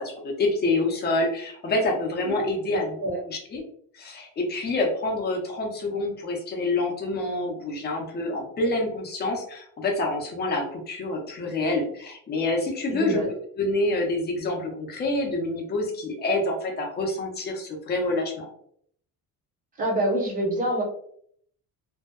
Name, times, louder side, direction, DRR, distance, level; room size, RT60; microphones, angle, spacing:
voice 1, 0.0-3.0 3.3-3.6 3.9-13.2 13.6-18.5, left 2 dB, 30° left, 0 dB, 0.6 m, -27 dB
voice 2, 2.3-3.2 12.9-13.3 19.8-20.8, right 1 dB, 25° right, -2 dB, 0.7 m, -27 dB
2.6 x 2.1 x 2.2 m, 0.64 s
cardioid pair, 165°, 35 cm